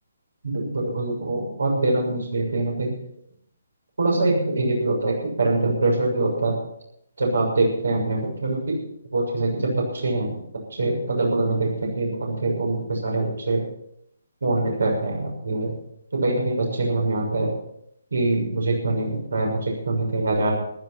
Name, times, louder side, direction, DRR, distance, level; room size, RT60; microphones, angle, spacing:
voice 1, 0.4-2.9 4.0-6.5 7.2-8.8 9.1-10.4 10.8-13.6 14.4-15.7 16.1-17.5 18.1-20.6, right 2 dB, 65° right, 0 dB, 6.4 m, -24 dB
15.0 x 13.0 x 5.8 m, 0.72 s
figure-of-eight pair, 140°, 0 cm